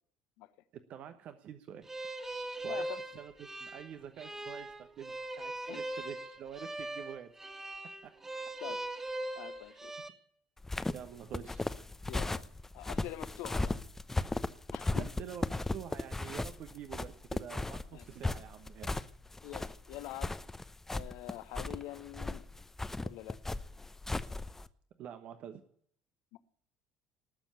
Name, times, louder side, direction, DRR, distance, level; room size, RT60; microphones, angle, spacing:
voice 1, 0.9-1.9 2.6-2.9 3.1-7.3 8.0-8.1 9.7-9.8 10.9-11.7 14.9-18.9 25.0-25.6, right 9 dB, 50° right, 1.1 m, -47 dB
sound 1, 1.9-10.1, right 2 dB, 15° right, 2.0 m, -40 dB
voice 2, 2.6-3.0 5.7-5.8 8.6-8.9 9.4-9.9 12.1-12.5 12.7-13.8 14.7-15.1 17.9-18.0 19.4-20.4 20.9-22.5 23.0-23.4 26.3-26.4, left 15 dB, 60° left, 1.0 m, -45 dB
sound 2, 10.6-24.7, left 2 dB, 10° left, 0.8 m, -36 dB
19.0 x 7.3 x 9.8 m
figure-of-eight pair, 60°, 3 cm